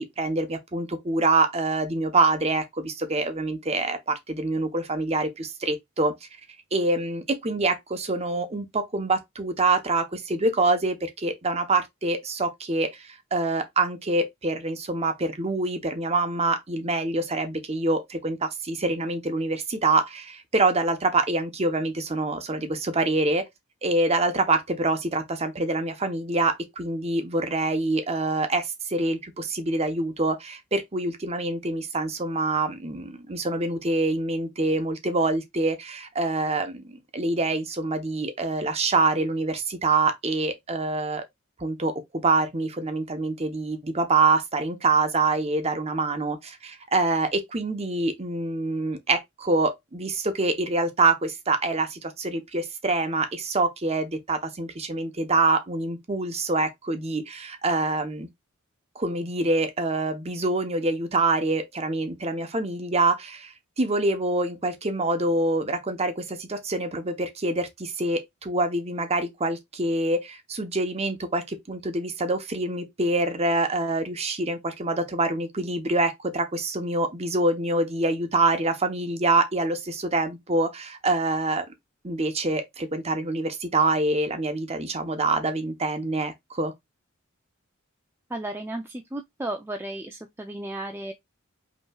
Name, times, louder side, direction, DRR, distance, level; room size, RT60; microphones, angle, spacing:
voice 1, 0.0-6.3 6.7-23.5 23.8-41.2 41.6-58.3 58.9-81.7 82.0-86.7, right 2 dB, 30° right, 0.8 m, -25 dB
voice 2, 88.3-91.1, right 1 dB, 10° right, 0.4 m, -34 dB
5.4 x 3.0 x 2.3 m
head